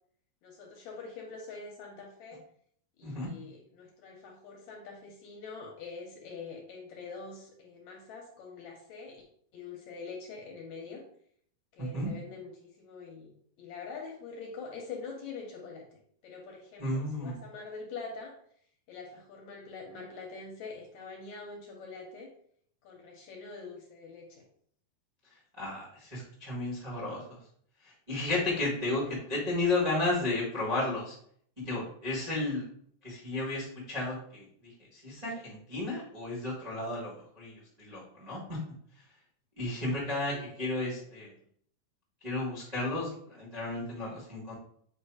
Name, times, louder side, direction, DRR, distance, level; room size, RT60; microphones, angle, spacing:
voice 1, 0.4-2.4 3.0-9.2 9.5-11.0 11.7-15.8 16.2-18.3 18.9-22.3 22.8-24.4 29.0-29.2 40.2-40.9, left 4 dB, 70° left, 0 dB, 1.8 m, -44 dB
voice 2, 11.8-12.1 16.8-17.4 25.6-27.4 28.1-31.1 31.6-32.6 33.0-34.4 34.9-38.6 39.6-41.3 42.2-44.5, left 2 dB, 65° right, -7 dB, 0.4 m, -33 dB
8.1 x 2.9 x 4.8 m, 0.64 s
omnidirectional pair, 4.2 m